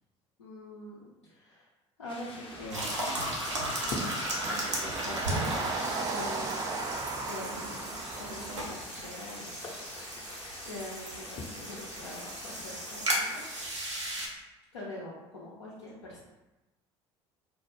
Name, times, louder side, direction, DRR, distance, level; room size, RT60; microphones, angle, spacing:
voice 1, 0.4-1.7 2.0-3.0 3.8-6.6 7.3-9.8 10.1-13.4 14.7-16.2, left 1 dB, 85° left, -7 dB, 0.4 m, -44 dB
sound 1, 2.1-13.7, left 2 dB, 35° left, 0.5 m, -45 dB
sound 2, 2.5-8.9, right 3 dB, 25° right, 0.3 m, -37 dB
sound 3, 2.7-14.3, right 1 dB, 90° right, 0.5 m, -36 dB
2.0 x 2.0 x 3.0 m, 1.0 s
figure-of-eight pair, 60°, 15 cm